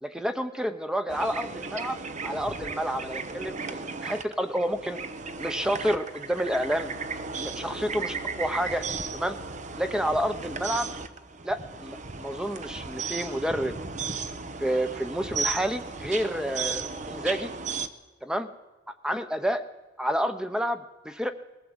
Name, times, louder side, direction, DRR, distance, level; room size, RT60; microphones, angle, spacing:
voice 1, 0.0-2.0 2.2-5.0 5.4-6.9 7.4-8.8 9.1-9.4 9.8-10.9 11.4-13.8 14.6-17.5 18.2-18.5 19.0-19.6 20.0-21.3, equal, 5° right, 9 dB, 1.0 m, -29 dB
sound 1, 1.1-17.9, right 4 dB, 40° right, 1.0 m, -35 dB
21.0 x 15.5 x 8.1 m, 1.2 s
head